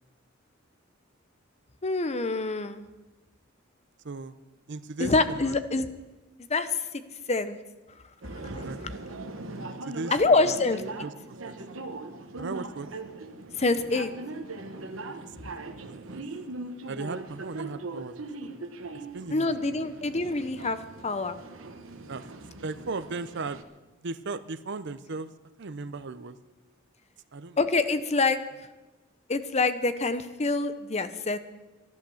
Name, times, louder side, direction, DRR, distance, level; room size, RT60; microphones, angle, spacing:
voice 1, 1.8-2.8 5.0-5.9 6.4-7.0 7.3-7.6 8.4-8.6 10.1-10.8 13.6-14.1 19.3-21.4 27.6-28.4 29.3-31.4, left 3 dB, 35° left, 12 dB, 0.8 m, -26 dB
voice 2, 4.0-4.3 4.7-5.5 8.5-9.1 9.7-10.1 10.4-10.5 11.0-11.6 12.4-12.9 15.1-15.5 15.8-16.2 16.9-18.5 18.9-19.8 22.1-22.3 22.6-23.6 24.0-25.3 25.6-26.4 27.3-27.6, right 3 dB, 60° right, 14 dB, 0.7 m, -37 dB
sound 1, 8.2-23.6, right 2 dB, 90° right, 1.2 m, -40 dB
13.0 x 11.5 x 7.1 m, 1.1 s
head